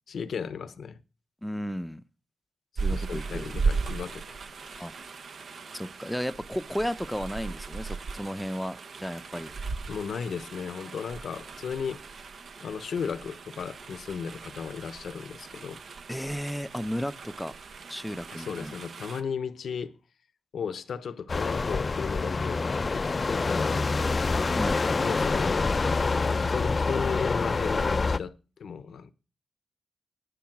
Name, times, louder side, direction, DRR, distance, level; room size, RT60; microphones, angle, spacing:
voice 1, 0.1-1.0 2.8-4.9 9.9-12.0 12.6-15.8 18.3-20.0 20.5-23.9 25.0-25.7 26.3-29.1, left 6 dB, 80° left, 0.9 m, -35 dB
voice 2, 1.4-2.0 2.8-3.5 4.8-4.9 5.7-9.5 16.1-17.5 17.9-18.7 24.6-24.8, equal, 5° left, 0.7 m, -34 dB
sound 1, 2.8-19.2, right 4 dB, 70° right, 1.0 m, -37 dB
sound 2, 21.3-28.2, left 3 dB, 45° left, 0.5 m, -26 dB
10.5 x 9.6 x 6.0 m
cardioid pair, 70°, 0 cm